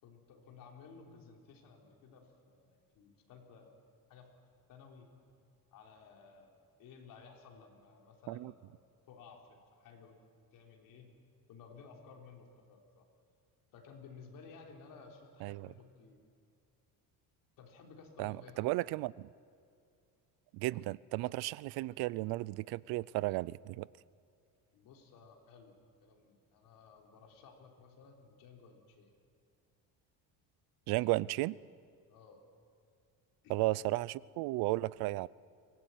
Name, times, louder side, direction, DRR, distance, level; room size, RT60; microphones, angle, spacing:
voice 1, 0.0-3.7 4.1-4.3 4.7-5.1 5.7-6.5 6.8-10.2 10.5-11.1 11.5-13.0 13.7-16.2 17.6-18.7 24.7-25.8 26.0-29.1 32.1-32.4 33.4-33.7, left 5 dB, 60° left, 3.7 m, -56 dB
voice 2, 18.2-19.3 20.5-23.9 30.9-31.6 33.5-35.3, right 19 dB, 75° right, 0.6 m, -34 dB
24.0 x 18.0 x 9.2 m
cardioid pair, 180°, 38 cm